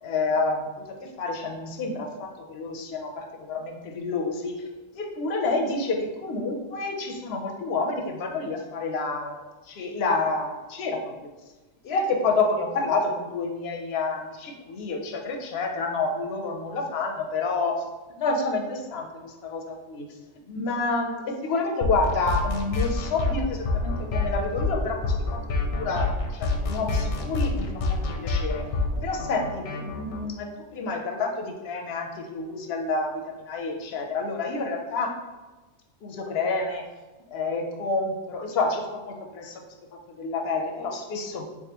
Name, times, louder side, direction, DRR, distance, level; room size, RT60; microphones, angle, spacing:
voice 1, 0.0-4.7 4.9-9.4 9.7-11.3 11.8-17.8 18.2-20.1 20.5-28.7 29.0-35.2 36.0-36.9 37.3-39.6 40.1-41.4, left 3 dB, 60° left, 3 dB, 0.7 m, -29 dB
sound 1, 21.8-30.2, left 3 dB, 85° left, 1.0 m, -27 dB
3.7 x 3.5 x 2.9 m, 1.2 s
omnidirectional pair, 1.3 m